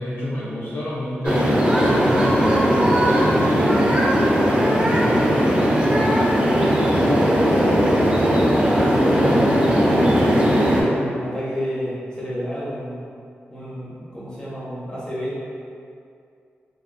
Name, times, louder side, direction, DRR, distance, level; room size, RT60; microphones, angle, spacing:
voice 1, 0.0-5.9, left 1 dB, 55° left, -7 dB, 0.3 m, -29 dB
sound 1, 1.2-10.8, equal, 25° right, 0.3 m, -18 dB
voice 2, 6.4-10.2 10.6-13.0 13.5-15.4, equal, 20° left, -9 dB, 0.7 m, -28 dB
2.6 x 2.3 x 2.4 m, 2.4 s
wide cardioid pair, 145°, 4 cm